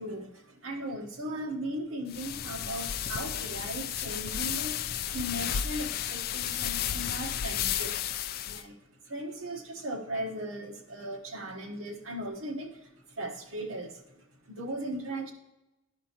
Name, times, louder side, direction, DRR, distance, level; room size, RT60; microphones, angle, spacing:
voice 1, 0.0-8.0 8.4-15.3, right 1 dB, 85° right, 1 dB, 1.1 m, -38 dB
sound 1, 2.1-8.6, left 10 dB, 50° left, 0.3 m, -33 dB
12.0 x 5.1 x 2.9 m, 0.98 s
head